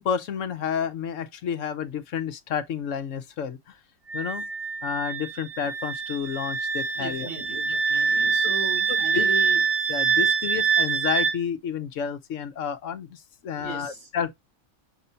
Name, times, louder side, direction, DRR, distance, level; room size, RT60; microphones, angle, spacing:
voice 1, 0.0-3.8 4.1-4.4 4.8-7.3 9.1-9.3 9.9-14.3, left 7 dB, 70° left, 1.0 m, -30 dB
Wind instrument woodwind instrument, 4.1-11.4, right 6 dB, 50° right, 1.7 m, -25 dB
voice 2, 6.9-9.6 13.5-14.1, right 3 dB, 85° right, 3.7 m, -37 dB
6.7 x 2.6 x 5.6 m
omnidirectional pair, 1.4 m